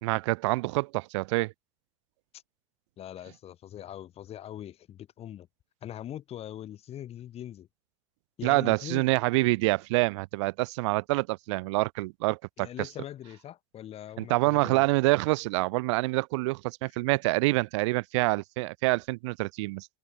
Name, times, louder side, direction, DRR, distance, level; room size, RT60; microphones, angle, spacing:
voice 1, 0.0-1.5 8.4-12.9 14.2-19.9, right 23 dB, 65° right, 1.9 m, -26 dB
voice 2, 3.0-5.5 5.8-7.7 8.4-9.1 12.6-14.9, left 11 dB, 40° left, 5.3 m, -41 dB
hypercardioid pair, 90°, 16 cm